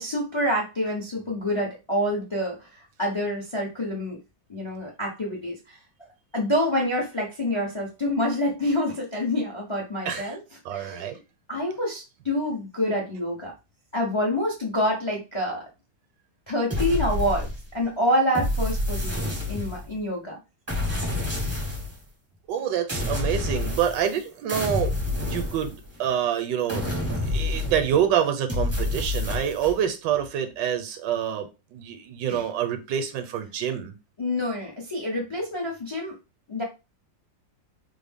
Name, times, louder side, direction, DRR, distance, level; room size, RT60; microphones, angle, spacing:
voice 1, 0.0-2.7 3.0-4.2 4.5-5.8 6.3-10.4 10.7-11.2 11.5-13.5 13.9-15.6 16.5-20.4 32.3-32.4 34.2-36.1 36.5-36.6, left 1 dB, 40° left, 0.4 m, -27 dB
voice 2, 10.0-10.4 10.6-11.2 22.5-26.9 27.3-33.9, right 9 dB, 80° right, 1.2 m, -27 dB
sound 1, 16.7-17.8 18.3-20.0 20.7-22.0 22.9-24.2 24.5-26.1 26.7-28.0 28.5-29.8, left 2 dB, 15° right, 0.5 m, -28 dB
3.7 x 2.0 x 3.5 m
omnidirectional pair, 2.0 m